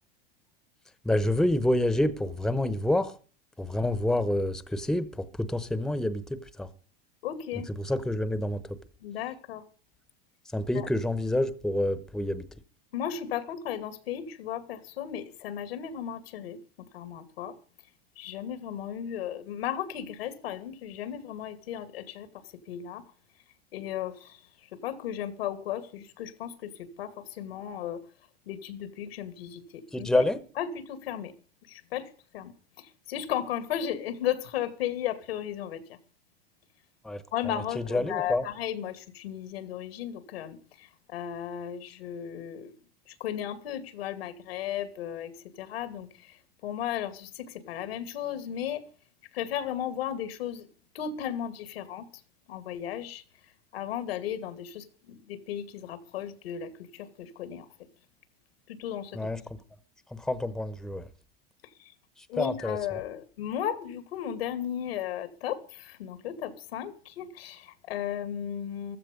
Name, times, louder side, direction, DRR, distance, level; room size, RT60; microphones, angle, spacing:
voice 1, 1.0-3.1 3.6-6.7 7.7-8.8 10.5-12.5 29.9-30.4 37.0-38.4 59.1-59.6 60.1-61.1 62.2-63.0, left 1 dB, ahead, 1.0 m, -28 dB
voice 2, 7.2-7.7 9.0-9.6 10.8-10.9 12.9-16.6 16.9-17.6 18.2-22.3 22.7-23.0 23.7-24.4 24.7-28.0 28.5-30.2 30.6-31.3 31.7-32.5 32.8-36.0 37.3-42.7 43.1-48.8 49.3-50.7 50.9-52.1 52.5-53.2 53.7-57.7 58.7-59.2 61.8-61.9 62.3-69.0, left 10 dB, 85° left, 2.4 m, -35 dB
15.5 x 13.0 x 5.2 m
supercardioid pair, 130°, 30 cm